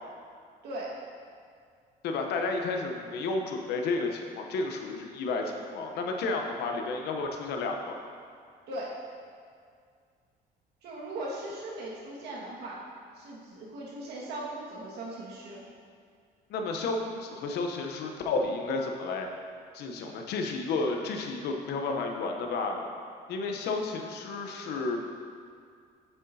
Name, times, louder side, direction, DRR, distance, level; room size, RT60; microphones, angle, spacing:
voice 1, 0.6-1.0 8.7-9.0 10.8-12.9 13.1-15.6, right 1 dB, 75° right, -4 dB, 1.8 m, -39 dB
voice 2, 2.0-8.0 16.5-19.3 19.7-22.9 23.3-25.0, left 3 dB, 75° left, 3 dB, 0.8 m, -31 dB
8.0 x 7.1 x 2.7 m, 2.2 s
cardioid pair, 110°, 17 cm